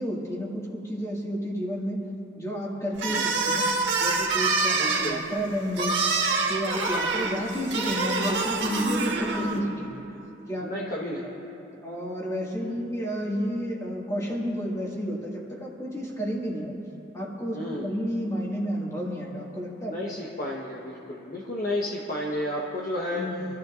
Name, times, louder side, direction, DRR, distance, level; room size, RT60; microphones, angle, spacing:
voice 1, 0.0-2.0 2.4-6.0 6.5-10.0 10.5-10.7 11.2-11.3 11.8-16.8 17.1-20.0 23.1-23.5, equal, 15° left, -4 dB, 2.0 m, -31 dB
sound 1, 3.0-9.6, right 3 dB, 80° right, 1.6 m, -26 dB
voice 2, 4.7-5.3 9.2-9.7 10.6-11.2 12.6-12.8 17.5-17.9 19.8-23.3, left 1 dB, 50° left, -4 dB, 1.2 m, -32 dB
26.0 x 14.0 x 2.6 m, 2.9 s
head